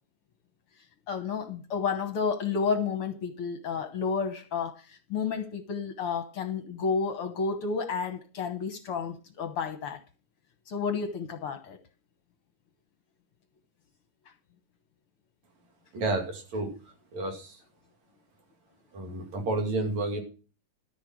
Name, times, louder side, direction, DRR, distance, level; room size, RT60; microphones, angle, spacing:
voice 1, 1.1-10.0 10.7-11.8, left 5 dB, 60° left, 1.7 m, -31 dB
voice 2, 15.9-16.7 17.1-17.6 18.9-20.2, right 2 dB, 70° right, 3.8 m, -30 dB
13.5 x 6.8 x 6.3 m
omnidirectional pair, 3.3 m